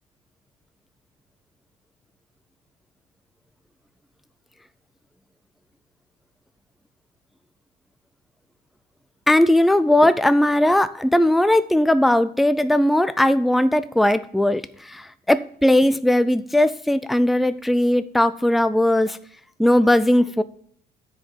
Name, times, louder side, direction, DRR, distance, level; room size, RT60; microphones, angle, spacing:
voice 1, 9.3-19.2 19.6-20.4, left 1 dB, ahead, 14 dB, 0.3 m, -18 dB
10.0 x 5.0 x 5.6 m, 0.63 s
cardioid pair, 140°, 17 cm